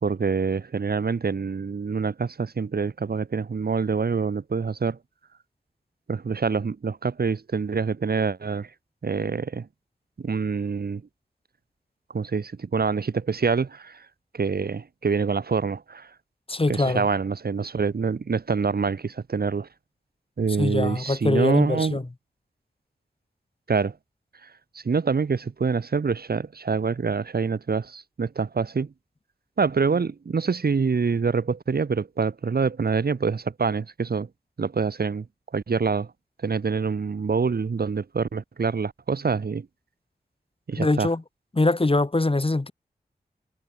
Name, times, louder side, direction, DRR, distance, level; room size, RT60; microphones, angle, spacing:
voice 1, 0.0-5.0 6.1-8.7 9.0-9.7 10.2-11.0 12.1-14.0 14.3-16.1 16.7-19.7 20.4-22.0 23.7-23.9 24.7-28.9 29.6-34.3 34.6-35.3 35.5-36.1 36.4-39.7 40.7-41.1, right 5 dB, 70° right, 2.3 m, -26 dB
voice 2, 16.5-17.1 20.6-22.0 40.8-41.2 41.5-42.7, left 2 dB, 35° left, 4.2 m, -23 dB
cardioid pair, 45°, 16 cm